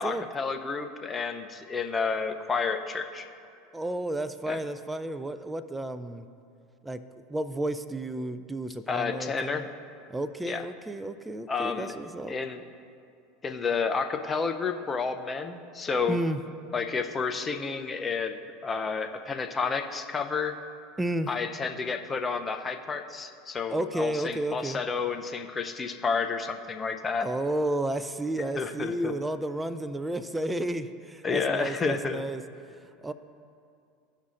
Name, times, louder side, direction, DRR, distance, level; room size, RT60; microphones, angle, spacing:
voice 1, 0.0-3.3 4.5-4.6 8.9-9.6 10.4-10.6 11.5-11.9 12.3-12.6 13.4-16.2 16.7-18.3 18.6-20.6 21.3-27.3 28.5-29.1 31.2-32.2, left 5 dB, 25° left, 6 dB, 0.7 m, -30 dB
voice 2, 3.7-6.3 6.8-9.7 10.1-12.4 16.1-16.4 21.0-21.3 23.7-24.8 27.2-32.4 33.0-33.1, right 1 dB, 10° right, 12 dB, 0.4 m, -32 dB
15.0 x 5.5 x 2.5 m, 2.4 s
hypercardioid pair, 85°, 0 cm